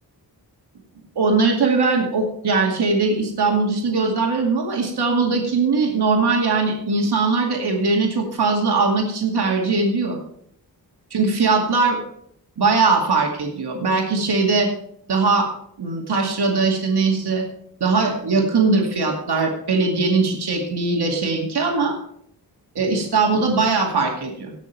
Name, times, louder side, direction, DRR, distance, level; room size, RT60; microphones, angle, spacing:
voice 1, 1.2-10.2 11.1-12.0 12.6-14.7 15.1-15.5 15.8-17.4 17.8-21.9 22.7-24.5, right 4 dB, 80° right, 0 dB, 2.4 m, -20 dB
17.5 x 6.5 x 4.5 m, 0.67 s
wide cardioid pair, 135°, 39 cm